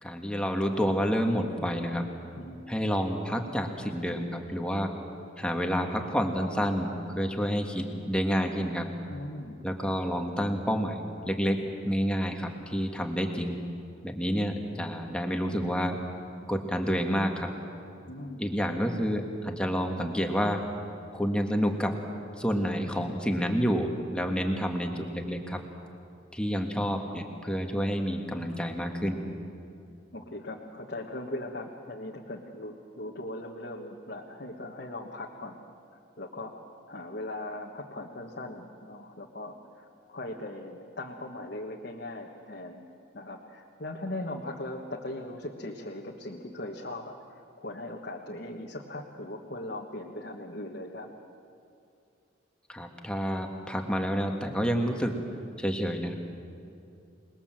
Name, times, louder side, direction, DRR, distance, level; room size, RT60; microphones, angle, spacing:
voice 1, 0.0-2.1 2.7-4.9 5.4-8.9 9.6-13.6 14.0-16.0 16.5-17.5 18.4-20.7 21.1-22.0 22.4-25.6 26.3-29.2 52.7-55.2 55.6-56.1, equal, 5° left, 3 dB, 1.7 m, -29 dB
voice 2, 9.1-9.6 18.1-18.4 30.1-35.6 36.2-36.5 36.9-42.8 43.1-51.1, left 1 dB, 55° left, -1 dB, 1.5 m, -39 dB
27.0 x 20.5 x 7.6 m, 2.6 s
head